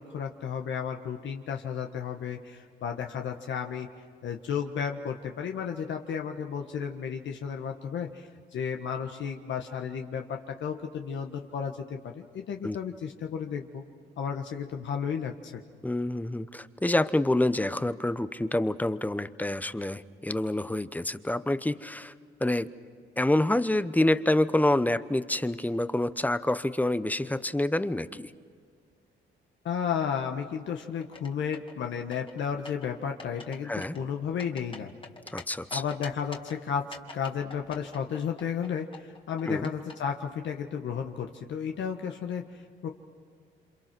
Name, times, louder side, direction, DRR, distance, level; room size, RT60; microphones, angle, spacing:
voice 1, 0.0-3.9 4.2-13.8 14.2-15.6 29.6-34.9 35.7-42.9, left 7 dB, 70° left, 3 dB, 1.4 m, -33 dB
voice 2, 15.8-22.1 22.4-22.7 23.2-28.3 33.7-34.0 35.3-35.8 39.5-39.7, left 1 dB, 10° left, 13 dB, 0.9 m, -27 dB
sound 1, 31.0-31.8 32.1-32.9 33.2-33.6 33.8-35.4 35.7-36.6 36.9-39.9, left 3 dB, 25° left, 2.3 m, -44 dB
28.0 x 27.0 x 6.1 m, 2.1 s
cardioid pair, 90°, 20 cm